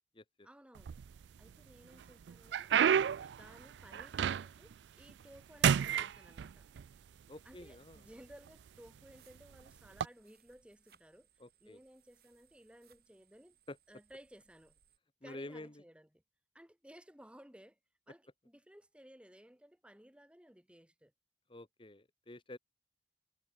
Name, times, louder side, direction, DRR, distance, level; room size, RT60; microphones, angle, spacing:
voice 1, 0.4-1.0 1.4-6.7 7.4-11.3 11.6-13.6 13.9-14.8 15.2-16.2 16.5-17.8 18.1-21.1, equal, 5° right, 2.5 m, -58 dB
sound 1, 0.8-1.5 2.0-4.7 5.1-5.4 5.6-6.9 7.7-7.8 8.5-8.7 9.9-10.1, right 8 dB, 85° right, 0.3 m, -31 dB
sound 2, 6.3-15.0, right 8 dB, 60° right, 5.9 m, -71 dB
voice 2, 7.3-8.0 11.4-11.8 13.7-13.8 15.2-15.7 21.5-22.6, left 1 dB, 30° left, 1.1 m, -48 dB
head